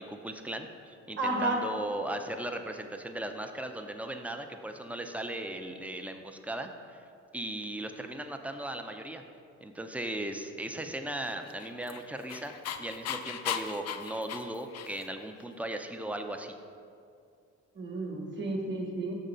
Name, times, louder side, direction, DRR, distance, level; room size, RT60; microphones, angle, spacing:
voice 1, 0.0-7.0 7.3-9.2 9.6-16.5, right 1 dB, 5° right, 5 dB, 0.4 m, -37 dB
voice 2, 1.2-1.6 17.7-19.1, right 2 dB, 40° right, 1 dB, 1.2 m, -31 dB
Dog, 11.4-15.3, left 8 dB, 55° left, 0.4 m, -37 dB
6.0 x 3.8 x 5.5 m, 2.4 s
cardioid pair, 90°, 30 cm